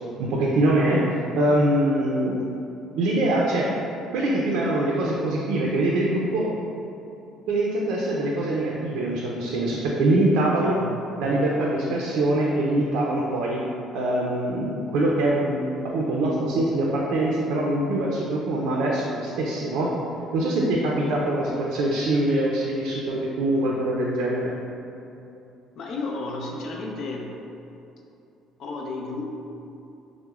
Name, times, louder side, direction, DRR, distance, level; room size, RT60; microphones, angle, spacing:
voice 1, 0.2-1.0 1.4-2.4 3.0-3.7 4.1-6.5 7.5-10.8 11.2-13.6 13.9-19.9 20.3-24.5, right 1 dB, 75° right, -3 dB, 0.4 m, -23 dB
voice 2, 10.6-11.0 25.8-27.3 28.6-29.3, left 3 dB, 55° left, -1 dB, 0.5 m, -32 dB
5.8 x 2.0 x 2.3 m, 2.8 s
cardioid pair, 140°, 0 cm